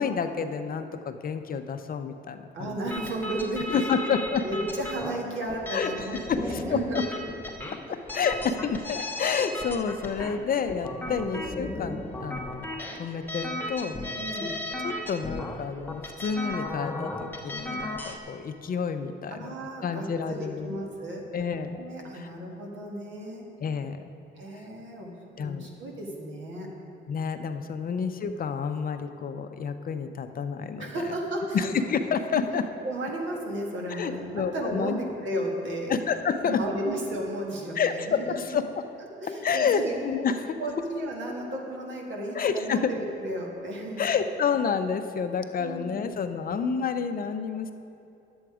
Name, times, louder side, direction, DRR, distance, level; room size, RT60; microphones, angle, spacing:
voice 1, 0.0-2.8 3.7-4.4 5.7-7.0 7.7-12.7 13.0-14.5 14.8-19.6 19.8-20.8 21.3-21.8 22.1-22.3 23.6-24.1 25.4-25.8 27.1-31.2 31.5-32.6 33.9-35.0 35.9-36.6 37.8-38.7 39.4-40.6 42.3-42.9 44.0-47.7, left 6 dB, 45° left, 8 dB, 0.6 m, -29 dB
voice 2, 2.5-3.9 4.4-7.0 8.1-8.3 11.1-11.4 14.1-14.6 19.3-21.2 21.7-23.4 24.4-26.7 27.9-28.0 30.8-31.7 32.3-32.4 32.8-35.9 36.4-38.4 39.2-40.0 40.6-44.0 45.6-46.2, right 1 dB, 70° right, -1 dB, 1.9 m, -34 dB
sound 1, 2.9-18.2, left 1 dB, 10° left, 0.9 m, -36 dB
10.0 x 7.9 x 4.9 m, 2.7 s
cardioid pair, 90°, 20 cm